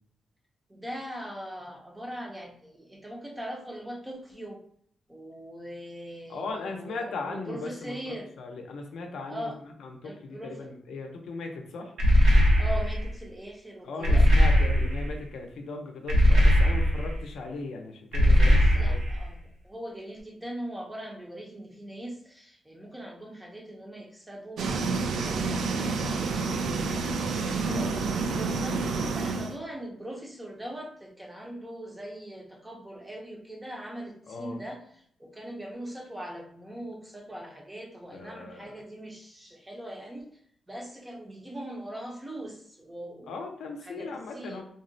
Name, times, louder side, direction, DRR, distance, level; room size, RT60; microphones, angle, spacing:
voice 1, 0.7-4.6 5.1-8.3 9.3-9.6 10.0-10.7 12.6-14.3 18.5-19.4 19.6-26.0 26.8-40.3 40.7-43.4 43.8-44.1 44.3-44.6, right 1 dB, 10° right, 0 dB, 0.4 m, -41 dB
voice 2, 6.3-9.5 9.8-11.9 13.8-19.0 27.6-28.0 34.3-34.6 38.1-38.6 43.3-44.6, left 3 dB, 70° left, 3 dB, 0.5 m, -38 dB
sound 1, 12.0-13.1 14.0-15.1 16.1-17.2 18.1-19.2, equal, 90° right, 0.7 m, -20 dB
sound 2, 24.6-29.6, right 4 dB, 70° right, 0.3 m, -29 dB
3.6 x 2.0 x 2.5 m, 0.64 s
wide cardioid pair, 175°, 0 cm